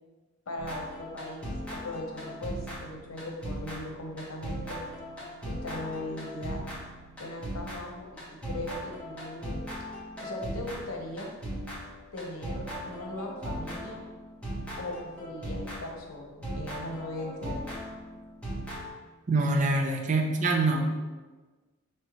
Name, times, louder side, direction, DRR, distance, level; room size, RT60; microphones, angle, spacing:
voice 1, 0.5-4.8 5.5-6.6 7.2-9.7 10.2-11.3 12.1-14.0 14.8-17.7 20.0-20.1, left 1 dB, 85° left, 1 dB, 0.8 m, -39 dB
sound 1, 0.6-16.0 16.4-18.9, equal, 5° left, 1.3 m, -38 dB
voice 2, 19.3-20.9, right 2 dB, 35° right, 1 dB, 0.5 m, -25 dB
5.5 x 3.1 x 3.0 m, 1.3 s
head